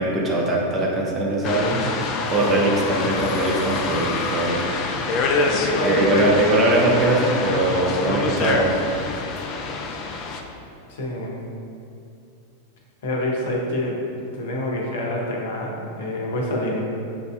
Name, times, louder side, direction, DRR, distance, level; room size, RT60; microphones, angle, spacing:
voice 1, 0.0-1.8 2.3-4.7 5.8-8.9, right 1 dB, 25° right, -2 dB, 0.7 m, -21 dB
sound 1, 1.4-10.4, left 3 dB, 40° left, 0.3 m, -26 dB
voice 2, 5.4-6.3 8.0-8.3 10.9-11.3 13.0-16.8, left 1 dB, 60° left, -2 dB, 0.7 m, -27 dB
6.6 x 2.6 x 2.2 m, 2.5 s
figure-of-eight pair, 90°, 0 cm